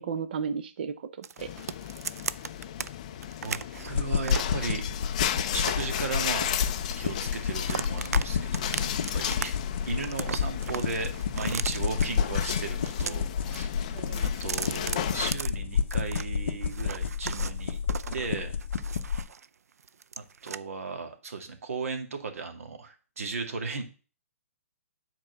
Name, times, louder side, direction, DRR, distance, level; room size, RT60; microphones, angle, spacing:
voice 1, 0.0-1.5 13.9-14.3, right 6 dB, 40° right, 11 dB, 0.7 m, -34 dB
sound 1, 1.2-2.9 3.2-4.5 5.0-7.1 7.4-8.3 8.5-9.4 9.7-12.0 12.7-13.6 13.9-16.3 16.6-19.5 19.8-20.6, right 6 dB, 85° right, 0.5 m, -37 dB
sound 2, 1.4-15.3, left 10 dB, 30° left, 0.5 m, -35 dB
voice 2, 3.4-4.8 5.5-6.5 7.0-9.5 9.9-13.7 14.2-17.8 18.1-18.6 20.2-23.8, right 4 dB, 65° right, 6 dB, 2.2 m, -36 dB
sound 3, 3.9-19.2, left 7 dB, 50° left, 0.8 m, -30 dB
9.7 x 4.5 x 6.5 m, 0.37 s
hypercardioid pair, 175°, 8 cm